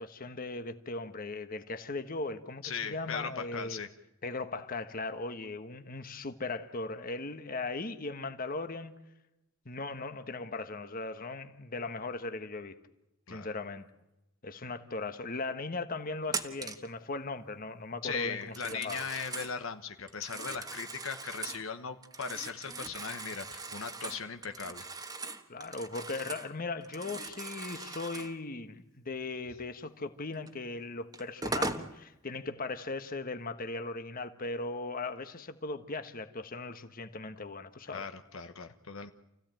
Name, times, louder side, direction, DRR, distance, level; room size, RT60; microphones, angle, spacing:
voice 1, 0.0-3.8 4.2-8.9 9.6-12.8 13.3-13.9 14.4-19.1 25.5-38.0, left 3 dB, 45° left, 1.4 m, -38 dB
voice 2, 2.6-3.9 13.3-13.5 18.0-24.9 37.9-39.1, left 6 dB, 70° left, 1.1 m, -38 dB
Telephone, 16.3-16.9 18.4-19.6 20.1-21.7 22.0-26.5 26.8-28.4 30.5-30.6 31.1-31.9, right 3 dB, 20° right, 1.5 m, -40 dB
28.5 x 16.0 x 9.1 m
head